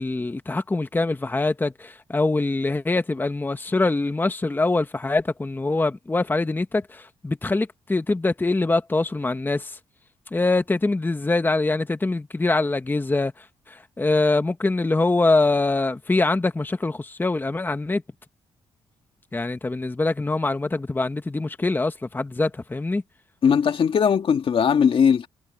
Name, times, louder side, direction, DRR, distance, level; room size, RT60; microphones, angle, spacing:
voice 1, 0.0-9.8 10.3-18.0 19.3-23.0, left 2 dB, 20° left, 1.3 m, -24 dB
voice 2, 23.4-25.3, left 7 dB, 55° left, 1.9 m, -19 dB
cardioid pair, 80°, 11 cm